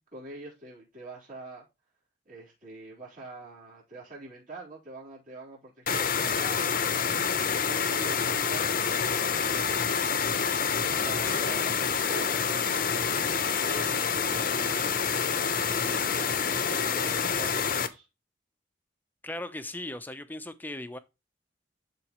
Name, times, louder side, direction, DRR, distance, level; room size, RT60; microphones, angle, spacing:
voice 1, 0.1-1.6 2.3-6.9 7.6-10.4 11.0-14.9 15.3-18.1, right 2 dB, 45° right, 3.8 m, -45 dB
sound 1, 5.9-17.9, left 6 dB, 45° left, 0.8 m, -27 dB
voice 2, 19.2-21.0, left 1 dB, 10° left, 0.7 m, -37 dB
12.0 x 4.1 x 3.0 m
head